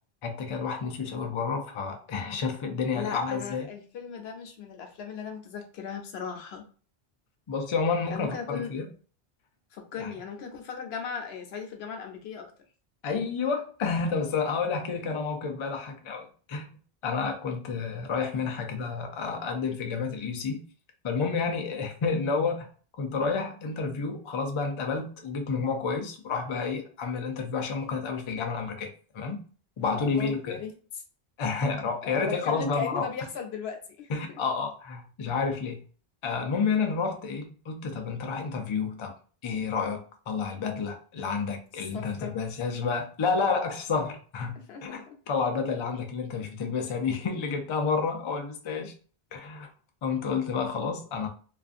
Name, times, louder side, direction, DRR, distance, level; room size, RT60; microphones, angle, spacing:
voice 1, 0.2-3.7 7.5-8.8 10.0-10.1 13.0-16.7 17.0-20.6 21.0-22.7 23.0-28.9 29.1-29.4 29.8-30.6 31.4-33.0 34.1-35.8 36.2-39.1 39.4-49.0 49.3-49.7 50.0-51.3, left 5 dB, 45° left, 4 dB, 0.4 m, -30 dB
voice 2, 2.9-6.6 8.1-8.8 9.7-12.5 17.0-17.1 21.5-21.7 29.9-30.7 32.0-34.4 41.9-42.3 44.7-45.2, left 6 dB, 80° left, 4 dB, 0.8 m, -37 dB
2.4 x 2.4 x 2.4 m, 0.40 s
omnidirectional pair, 1.0 m